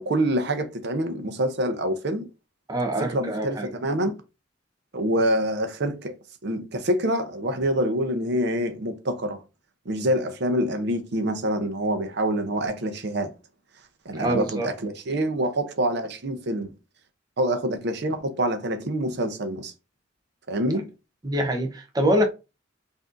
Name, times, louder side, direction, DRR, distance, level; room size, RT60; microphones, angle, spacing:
voice 1, 0.0-2.3 3.0-4.1 4.9-6.1 6.4-9.4 9.9-13.3 14.0-16.7 17.4-19.7 20.5-20.9, right 1 dB, 65° right, 0.7 m, -26 dB
voice 2, 2.7-3.7 14.1-14.7 21.2-22.3, equal, 20° right, 0.7 m, -25 dB
5.8 x 2.7 x 2.5 m
head